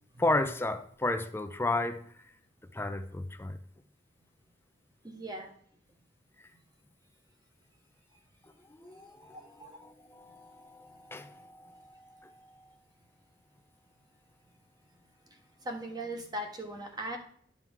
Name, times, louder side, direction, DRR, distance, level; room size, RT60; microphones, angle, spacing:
voice 1, 0.2-2.0 2.7-3.6 8.7-12.3, left 2 dB, 15° left, 0.5 m, -34 dB
voice 2, 5.0-5.5 9.3-9.8 15.6-17.2, right 1 dB, 20° right, 1.1 m, -39 dB
11.0 x 4.5 x 3.7 m
head